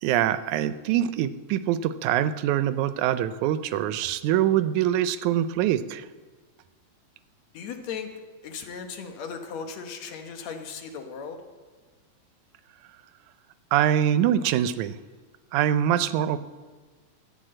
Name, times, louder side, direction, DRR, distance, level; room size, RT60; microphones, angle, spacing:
voice 1, 0.0-6.1 13.7-15.0 15.5-16.4, right 11 dB, 90° right, 13 dB, 2.0 m, -24 dB
voice 2, 7.5-8.1 8.4-11.4, left 6 dB, 70° left, 5 dB, 2.3 m, -37 dB
14.0 x 8.3 x 7.7 m, 1.4 s
omnidirectional pair, 3.3 m